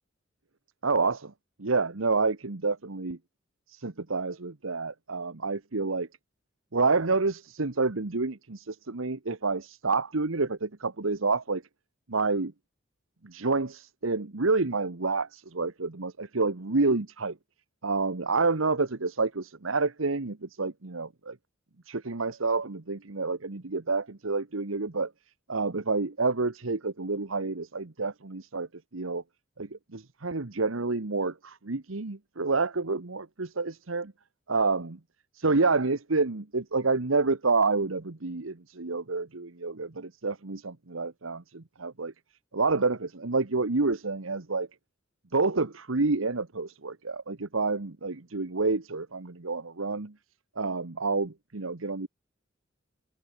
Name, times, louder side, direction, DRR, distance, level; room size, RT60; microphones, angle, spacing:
voice 1, 0.8-1.3 1.6-3.2 3.7-6.1 6.7-11.6 12.1-12.5 13.2-17.4 17.8-21.4 21.9-25.1 25.5-28.7 28.9-29.2 29.6-34.1 34.5-35.0 35.3-42.1 42.5-44.7 45.3-50.1 50.6-52.1, right 3 dB, 80° right, 1.3 m, -28 dB
head